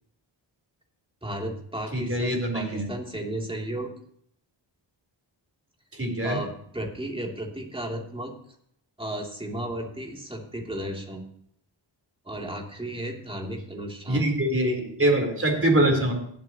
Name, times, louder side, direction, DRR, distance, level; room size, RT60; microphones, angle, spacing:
voice 1, 1.2-3.9 6.2-8.3 9.0-11.3 12.2-14.2, right 1 dB, 10° right, 0 dB, 3.1 m, -34 dB
voice 2, 1.9-2.9 5.9-6.4 14.1-16.1, right 1 dB, 30° right, 1 dB, 4.1 m, -24 dB
18.0 x 8.2 x 3.1 m, 0.65 s
cardioid pair, 60°, 45 cm